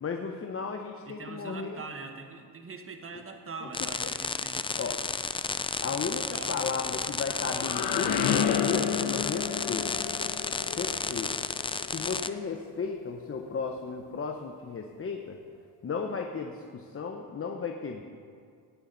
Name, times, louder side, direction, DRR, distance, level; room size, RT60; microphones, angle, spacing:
voice 1, 0.0-1.8 3.6-3.7 4.0-4.1 4.8-5.0 5.8-9.9 10.8-11.3 11.9-15.4 15.8-18.0, left 5 dB, 35° left, 3 dB, 0.9 m, -34 dB
voice 2, 1.0-5.0 6.3-6.6 10.6-11.0, right 4 dB, 35° right, 5 dB, 1.5 m, -43 dB
sound 1, 3.7-12.3, left 4 dB, 15° left, 0.4 m, -32 dB
sound 2, 6.9-12.7, left 8 dB, 65° left, 1.1 m, -31 dB
18.0 x 9.8 x 4.1 m, 2.3 s
cardioid pair, 95°, 40 cm